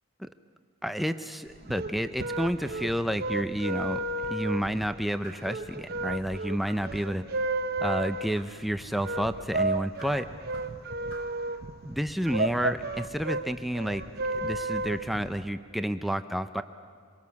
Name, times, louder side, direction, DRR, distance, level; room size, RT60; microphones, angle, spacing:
voice 1, 0.8-7.2 7.8-10.3 11.8-14.0 14.3-16.6, equal, ahead, 9 dB, 0.5 m, -30 dB
sound 1, 1.5-15.4, right 2 dB, 45° right, 0.9 m, -33 dB
sound 2, 5.2-5.6 6.6-7.0 8.3-8.6 9.5-10.8 11.1-11.4, equal, 60° left, 3.9 m, -50 dB
26.0 x 23.0 x 7.1 m, 2.1 s
head